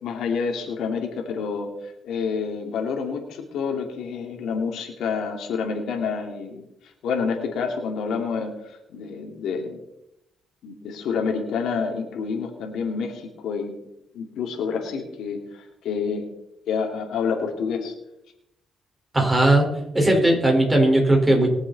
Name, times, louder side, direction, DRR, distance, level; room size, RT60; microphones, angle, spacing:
voice 1, 0.0-6.6 7.0-9.8 10.6-13.7 14.1-16.3 16.7-17.9, left 5 dB, 80° left, 2 dB, 2.8 m, -28 dB
voice 2, 19.1-19.7 19.9-21.5, right 1 dB, 15° right, 0 dB, 4.7 m, -18 dB
22.5 x 7.6 x 4.2 m, 0.88 s
cardioid pair, 90°, 0 cm